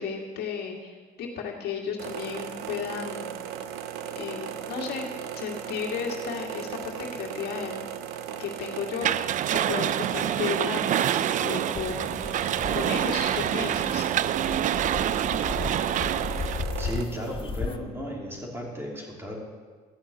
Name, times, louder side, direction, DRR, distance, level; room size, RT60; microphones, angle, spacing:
voice 1, 0.0-3.3 4.1-7.8 8.4-12.2 12.4-14.0, left 6 dB, 70° left, -1 dB, 2.1 m, -34 dB
sound 1, 2.0-17.0, right 9 dB, 85° right, 0.8 m, -37 dB
sound 2, 9.0-16.6, right 11 dB, 50° right, 0.4 m, -27 dB
sound 3, 11.7-17.8, left 5 dB, 30° left, 0.7 m, -36 dB
voice 2, 16.8-19.3, equal, 15° right, -2 dB, 3.0 m, -34 dB
13.5 x 5.7 x 8.7 m, 1.5 s
cardioid pair, 110°, 17 cm